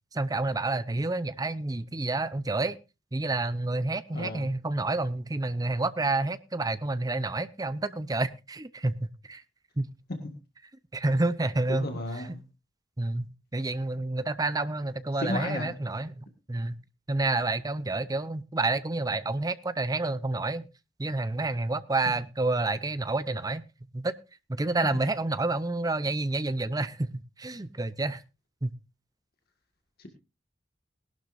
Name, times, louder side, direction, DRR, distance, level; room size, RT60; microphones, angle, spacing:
voice 1, 0.1-2.8 3.1-9.4 9.8-9.9 10.9-12.0 13.0-16.1 16.5-16.8 17.1-20.7 21.0-23.6 23.9-24.1 24.5-28.2 28.6-28.7, right 2 dB, 20° right, 0.7 m, -29 dB
voice 2, 4.1-4.5 11.7-12.4 15.2-15.7 30.0-30.1, left 1 dB, 55° left, 1.9 m, -33 dB
19.5 x 12.0 x 2.6 m
head